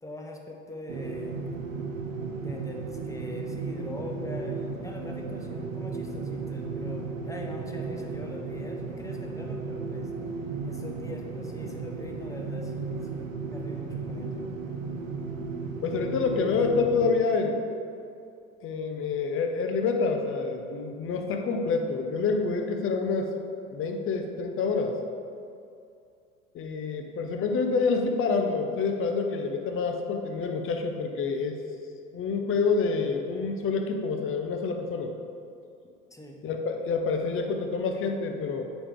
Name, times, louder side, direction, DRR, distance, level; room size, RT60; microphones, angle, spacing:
voice 1, 0.0-1.5 2.4-10.1 10.6-14.5 36.1-36.5, left 1 dB, 10° left, 1 dB, 0.9 m, -42 dB
sound 1, 0.9-17.1, right 4 dB, 80° right, 1.0 m, -35 dB
voice 2, 15.8-17.6 18.6-23.3 23.7-25.0 26.5-31.6 32.1-35.1 36.4-38.6, left 4 dB, 30° left, 4 dB, 0.9 m, -27 dB
8.5 x 5.1 x 3.7 m, 2.5 s
hypercardioid pair, 85°, 40 cm